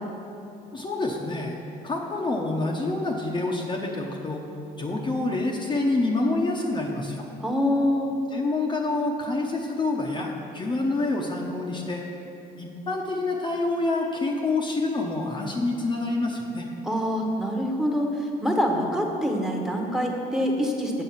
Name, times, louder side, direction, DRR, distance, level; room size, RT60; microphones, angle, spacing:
voice 1, 0.7-1.6 1.8-4.4 4.8-7.3 8.3-12.0 12.6-16.7, left 2 dB, 25° left, -1 dB, 0.8 m, -27 dB
voice 2, 7.4-8.2 16.8-21.0, equal, 5° right, 1 dB, 1.1 m, -25 dB
7.5 x 6.9 x 5.6 m, 2.9 s
cardioid pair, 110°, 17 cm